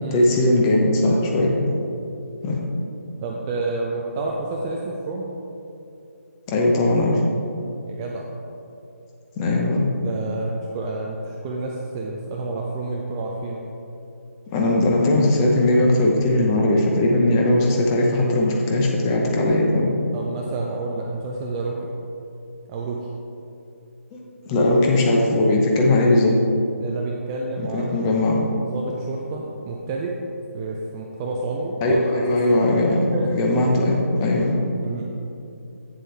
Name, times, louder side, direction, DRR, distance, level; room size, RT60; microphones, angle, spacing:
voice 1, 0.1-1.6 2.4-2.6 6.5-7.2 9.4-9.9 14.5-19.9 24.1-24.2 24.5-26.3 27.7-28.4 31.8-33.0 33.3-34.5, left 1 dB, 15° left, -1 dB, 0.8 m, -19 dB
voice 2, 3.2-5.3 7.9-8.3 10.0-13.6 20.1-21.9 22.7-23.0 26.8-28.1 28.6-30.1 30.5-32.6 33.1-33.3 34.8-35.1, right 3 dB, 15° right, -1 dB, 0.4 m, -29 dB
8.5 x 7.4 x 3.3 m, 2.8 s
figure-of-eight pair, 150°, 8 cm